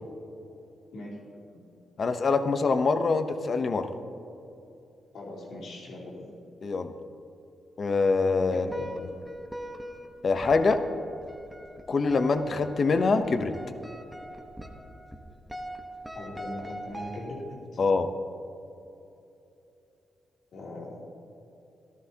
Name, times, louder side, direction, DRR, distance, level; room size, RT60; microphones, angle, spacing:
voice 1, 0.9-1.6 5.1-6.3 8.5-8.9 16.1-17.8 20.5-21.0, left 1 dB, 75° left, -4 dB, 2.8 m, -40 dB
voice 2, 2.0-3.9 6.6-6.9 7.8-8.7 8.9-9.1 10.2-10.8 11.9-13.5 17.8-18.1, left 4 dB, 50° left, 8 dB, 0.7 m, -24 dB
sound 1, 8.7-17.7, equal, ahead, 1.0 m, -42 dB
15.0 x 12.5 x 2.8 m, 2.8 s
cardioid pair, 90°, 0 cm